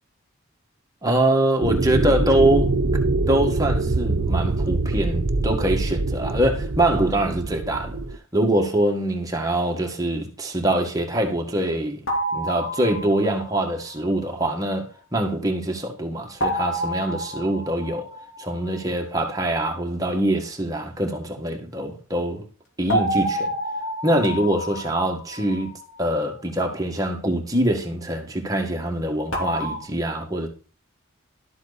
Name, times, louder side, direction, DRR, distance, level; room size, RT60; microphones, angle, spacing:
voice 1, 1.0-2.7 3.3-8.0 8.3-12.0 12.3-18.1 18.4-22.4 22.8-23.5 24.0-25.7 26.0-30.5, right 1 dB, 15° right, 1.8 m, -24 dB
sound 1, 1.6-8.2, right 2 dB, 65° right, 0.9 m, -24 dB
sound 2, 12.1-13.6 16.4-18.9 22.9-26.1 29.3-29.8, equal, 75° left, 2.6 m, -29 dB
12.5 x 8.0 x 4.2 m
head